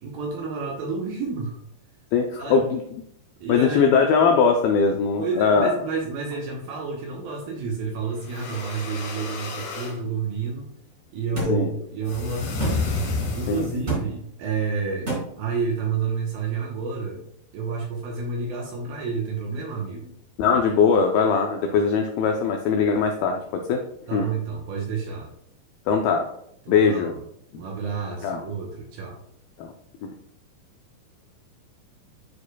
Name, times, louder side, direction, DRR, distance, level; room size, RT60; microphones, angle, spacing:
voice 1, 0.0-1.5 2.4-2.7 3.4-3.9 5.2-10.7 11.1-13.0 13.3-15.1 15.4-17.2 17.5-20.1 24.1-25.3 26.7-27.2 27.5-29.2, right 5 dB, 75° right, 0 dB, 2.4 m, -30 dB
voice 2, 2.1-2.8 3.5-5.7 11.5-11.7 13.5-13.7 20.4-23.8 24.1-24.3 25.9-26.3 26.7-27.1 28.2-28.4 29.6-29.7 30.0-30.1, left 5 dB, 85° left, 3 dB, 2.1 m, -21 dB
sound 1, 8.2-10.0 12.1-13.9, left 3 dB, 65° left, 1.9 m, -30 dB
sound 2, 11.4-11.5 12.6-12.8 13.9-14.0 15.1-15.2, right 3 dB, 20° right, 2.3 m, -24 dB
11.0 x 4.8 x 2.3 m, 0.72 s
omnidirectional pair, 5.0 m